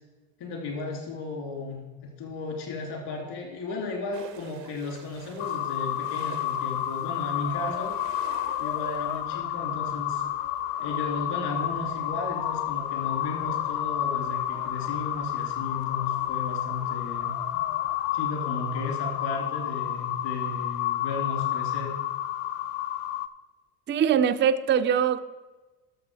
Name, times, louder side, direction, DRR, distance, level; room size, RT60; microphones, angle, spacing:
voice 1, 0.4-8.0 8.6-10.2 10.8-17.6 18.1-21.9, left 3 dB, 55° left, 1 dB, 3.1 m, -34 dB
sound 1, 4.1-9.2, right 9 dB, 85° right, 1.2 m, -48 dB
sound 2, 5.4-23.3, left 12 dB, 80° left, 0.6 m, -30 dB
sound 3, 7.4-18.3, left 9 dB, 40° left, 0.8 m, -44 dB
voice 2, 23.9-25.2, right 8 dB, 25° right, 9 dB, 0.5 m, -22 dB
12.5 x 6.7 x 4.8 m, 1.2 s
hypercardioid pair, 85°, 48 cm